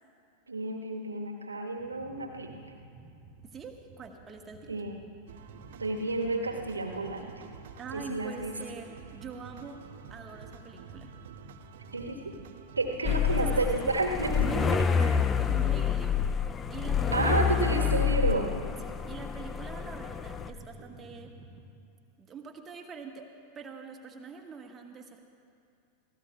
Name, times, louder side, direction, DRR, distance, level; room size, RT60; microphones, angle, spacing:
voice 1, 0.5-2.5 4.7-5.0 5.8-7.3 7.9-8.5 11.9-12.4 12.8-14.6 15.0-15.1 17.1-18.5, right 2 dB, 75° right, 3 dB, 1.4 m, -31 dB
sound 1, 1.8-21.7, right 2 dB, 40° right, 1.5 m, -52 dB
voice 2, 3.4-4.8 7.8-9.8 10.1-11.1 13.0-13.7 14.4-16.3 16.7-17.4 18.8-21.3 22.2-25.3, right 5 dB, 20° right, 2 dB, 1.4 m, -44 dB
sound 2, 5.3-15.7, right 8 dB, 55° right, 0.7 m, -50 dB
sound 3, 13.0-20.5, left 7 dB, 20° left, 0.4 m, -28 dB
29.0 x 16.5 x 2.3 m, 2.4 s
figure-of-eight pair, 90°, 0 cm